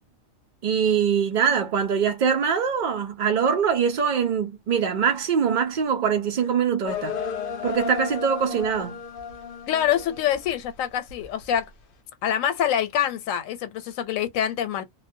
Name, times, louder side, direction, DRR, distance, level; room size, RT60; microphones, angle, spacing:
voice 1, 0.6-7.2 7.6-9.0, right 7 dB, 75° right, 0.4 m, -23 dB
sound 1, 6.9-10.6 11.1-11.6, left 6 dB, 55° left, 0.7 m, -33 dB
voice 2, 9.7-11.7 12.2-14.8, left 10 dB, 90° left, 1.0 m, -25 dB
2.3 x 2.1 x 2.5 m
omnidirectional pair, 1.3 m